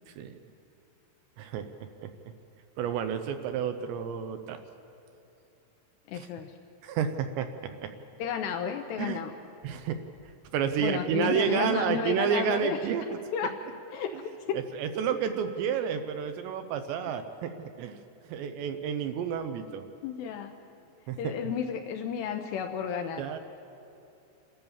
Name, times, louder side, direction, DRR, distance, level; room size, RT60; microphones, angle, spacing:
voice 1, 0.1-0.4 1.4-1.7 2.0-2.1 2.8-4.6 6.1-6.3 6.8-7.9 9.0-9.2 9.6-10.0 10.5-13.2 14.5-18.0 18.3-19.9 21.1-21.5 23.2-23.4, right 8 dB, 80° right, 8 dB, 2.8 m, -30 dB
voice 2, 6.1-6.5 8.2-9.3 10.8-12.8 13.3-13.6 13.9-14.6 20.0-20.5 21.2-23.2, left 8 dB, 80° left, 5 dB, 2.6 m, -32 dB
28.0 x 13.5 x 7.2 m, 2.8 s
omnidirectional pair, 5.6 m